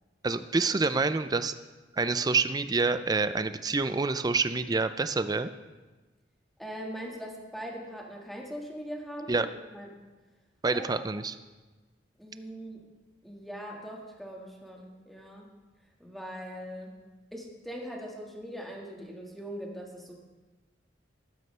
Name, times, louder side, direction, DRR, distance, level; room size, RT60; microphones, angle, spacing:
voice 1, 0.2-1.5 1.9-5.5 9.3-9.5 10.6-11.4, right 3 dB, 20° right, 11 dB, 0.4 m, -27 dB
voice 2, 6.6-9.5 9.7-9.9 10.7-11.0 12.2-12.8 13.2-15.5 16.0-16.9 17.3-20.2, equal, ahead, -1 dB, 1.7 m, -41 dB
14.5 x 12.0 x 3.3 m, 1.2 s
head